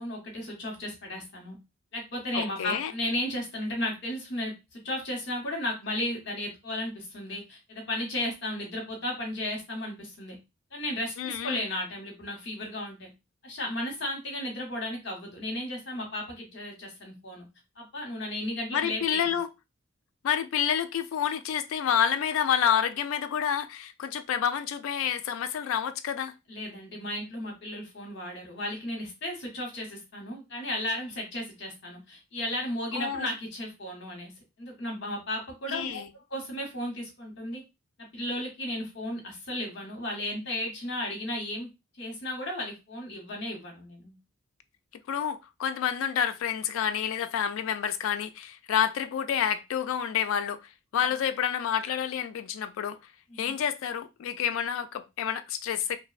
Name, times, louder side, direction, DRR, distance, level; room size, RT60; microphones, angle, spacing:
voice 1, 0.0-1.6 1.9-10.4 10.7-13.1 13.4-17.5 17.8-19.4 26.5-34.3 34.6-36.0 36.3-37.6 38.1-41.7 42.0-44.1 53.3-53.5, left 1 dB, 55° left, 0.9 m, -34 dB
voice 2, 2.3-2.9 11.2-11.7 18.7-19.5 20.2-26.3 32.9-33.3 35.7-36.1 45.1-53.0 53.4-56.0, left 8 dB, 80° left, 0.3 m, -29 dB
2.6 x 2.1 x 2.3 m
head